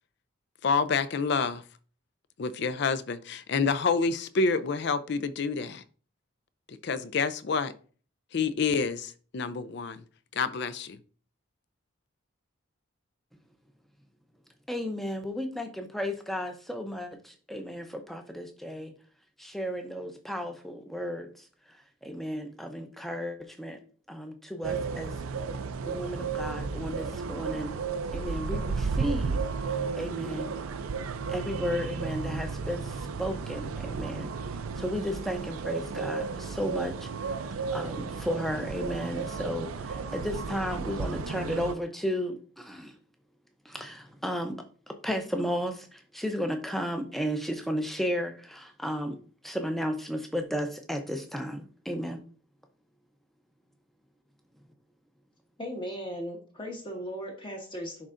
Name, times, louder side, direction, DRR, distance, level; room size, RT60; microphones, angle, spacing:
voice 1, 0.6-1.6 2.4-5.8 6.8-7.7 8.3-10.0 10.3-11.0, left 4 dB, 55° left, 0.4 m, -28 dB
voice 2, 14.7-18.9 19.4-21.5 22.0-23.8 24.1-25.1 25.9-27.8 28.1-29.4 30.0-30.6 31.3-34.3 34.8-37.1 37.4-42.9 43.6-52.2, equal, ahead, 0.6 m, -34 dB
sound 1, 24.6-41.7, right 5 dB, 85° right, 0.5 m, -33 dB
voice 3, 55.6-58.1, equal, 25° left, 1.0 m, -37 dB
10.5 x 3.7 x 2.5 m
head